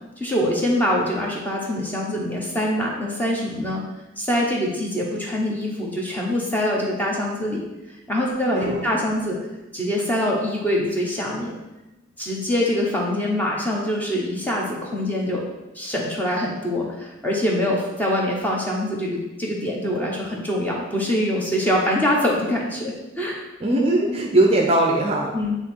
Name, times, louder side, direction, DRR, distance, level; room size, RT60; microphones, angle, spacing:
voice 1, 0.2-3.8 4.2-7.7 8.1-9.4 9.7-11.5 12.2-15.4 15.7-23.4 24.1-24.2 25.3-25.6, left 1 dB, 10° left, -3 dB, 1.0 m, -24 dB
voice 2, 8.5-9.0 23.6-25.3, right 1 dB, 30° right, 0 dB, 0.6 m, -20 dB
8.6 x 3.0 x 4.5 m, 1.0 s
head